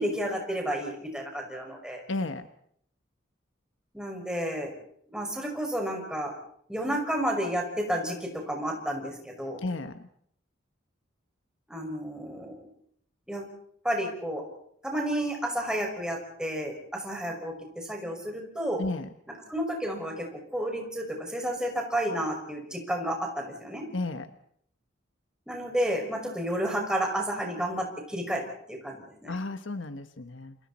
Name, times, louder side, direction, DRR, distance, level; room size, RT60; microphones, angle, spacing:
voice 1, 0.0-2.0 3.9-4.7 5.1-6.3 6.7-9.6 11.7-12.6 13.3-13.5 13.8-14.4 14.8-18.8 19.5-23.8 25.5-28.4 28.7-29.3, equal, 5° right, 1 dB, 5.9 m, -31 dB
voice 2, 2.1-2.5 9.6-10.1 18.8-19.1 23.9-24.3 29.3-30.6, left 2 dB, 75° left, 9 dB, 1.2 m, -33 dB
29.0 x 28.0 x 4.3 m, 0.67 s
head